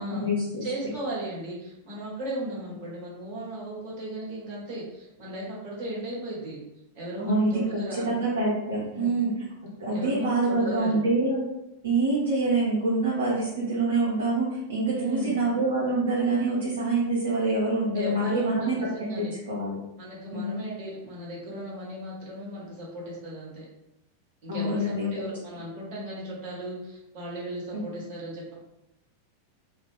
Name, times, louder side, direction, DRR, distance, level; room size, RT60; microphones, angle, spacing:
voice 1, 0.0-0.6 7.2-9.3 9.8-11.4 11.8-19.7 20.3-20.6 24.5-25.2 27.7-28.0, right 2 dB, 70° right, -7 dB, 0.7 m, -26 dB
voice 2, 0.6-6.6 6.9-8.2 8.9-9.1 9.9-11.0 15.0-15.4 17.9-19.4 20.0-23.6 24.4-28.5, right 1 dB, 45° right, -5 dB, 1.1 m, -36 dB
2.3 x 2.0 x 3.2 m, 0.89 s
figure-of-eight pair, 90°, 0 cm